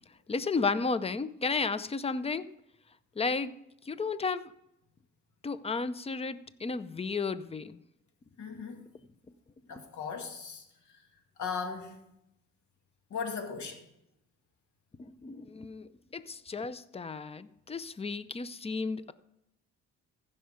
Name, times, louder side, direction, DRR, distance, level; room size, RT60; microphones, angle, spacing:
voice 1, 0.3-2.5 3.2-3.5 3.9-4.4 5.4-7.8 9.7-9.9 15.0-19.1, left 4 dB, 20° left, 0.6 m, -33 dB
voice 2, 8.4-8.8 9.7-10.6 11.4-12.0 13.1-13.8, left 5 dB, 75° left, 2.2 m, -37 dB
15.0 x 5.6 x 5.1 m
cardioid pair, 90°, 30 cm